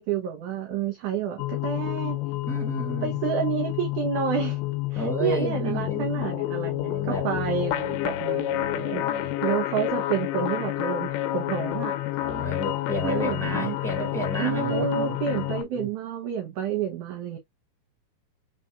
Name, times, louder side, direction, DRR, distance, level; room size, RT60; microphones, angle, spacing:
voice 1, 0.0-2.2 3.0-4.6 4.9-11.9 13.0-13.8 14.4-17.4, right 7 dB, 70° right, 1.9 m, -29 dB
sound 1, 1.4-15.6, left 15 dB, 90° left, 2.6 m, -29 dB
voice 2, 2.5-3.2 4.9-6.3 6.9-8.2 8.5-9.3 12.2-15.9, right 1 dB, ahead, 0.9 m, -33 dB
5.5 x 4.1 x 2.4 m
omnidirectional pair, 4.4 m